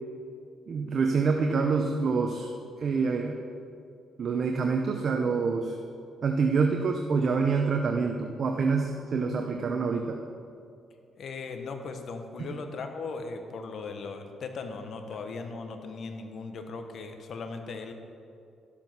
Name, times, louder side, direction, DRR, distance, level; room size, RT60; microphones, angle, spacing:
voice 1, 0.7-2.5 2.8-3.4 4.2-5.8 6.2-10.2, right 4 dB, 50° right, 3 dB, 0.8 m, -26 dB
voice 2, 11.2-17.9, left 4 dB, 60° left, 6 dB, 1.1 m, -38 dB
11.5 x 7.5 x 6.0 m, 2.5 s
cardioid pair, 90°, 0 cm